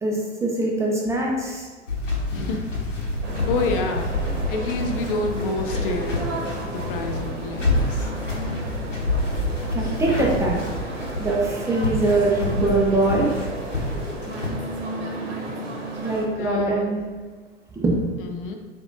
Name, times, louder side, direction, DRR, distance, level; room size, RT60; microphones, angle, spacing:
voice 1, 0.0-1.7 9.7-10.5 11.2-13.3 16.0-17.0 17.8-18.0, right 2 dB, 10° right, -2 dB, 0.7 m, -22 dB
sound 1, 1.9-14.5, left 2 dB, 90° left, 1.0 m, -28 dB
voice 2, 2.3-2.6 3.5-4.1 4.5-6.4 6.7-8.1 16.4-16.9 18.2-18.6, left 3 dB, 45° left, 3 dB, 0.6 m, -28 dB
sound 2, 3.2-16.3, right 1 dB, 60° right, 1.1 m, -33 dB
7.0 x 2.6 x 2.6 m, 1.4 s
figure-of-eight pair, 90°, 36 cm